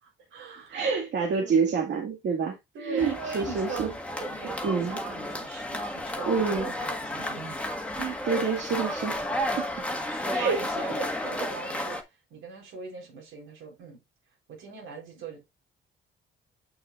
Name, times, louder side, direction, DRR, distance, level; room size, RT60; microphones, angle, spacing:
voice 1, 0.0-0.8 1.4-1.8 2.7-7.6 9.3-14.0 14.5-15.4, right 4 dB, 80° right, 4.0 m, -40 dB
voice 2, 0.7-3.9 4.4-5.0 6.3-6.7 8.0-9.2 9.5-9.7 10.3-10.7, right 5 dB, 65° right, 2.0 m, -28 dB
sound 1, 3.0-12.0, left 1 dB, 5° left, 1.6 m, -32 dB
8.1 x 6.1 x 2.5 m
cardioid pair, 90°, 20 cm